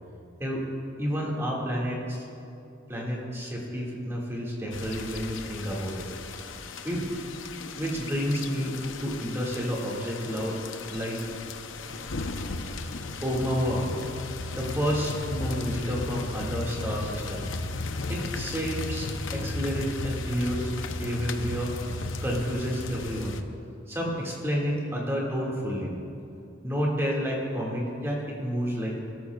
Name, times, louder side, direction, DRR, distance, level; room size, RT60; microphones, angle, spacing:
voice 1, 0.4-0.7 1.0-2.2 2.9-6.1 6.8-7.2 7.7-10.6 10.9-11.2 13.2-13.9 14.6-17.5 18.1-23.4 23.9-25.9 26.6-29.0, equal, 15° right, -3 dB, 2.0 m, -30 dB
sound 1, 4.7-23.4, left 3 dB, 80° left, 0.7 m, -35 dB
22.0 x 13.5 x 2.4 m, 2.8 s
head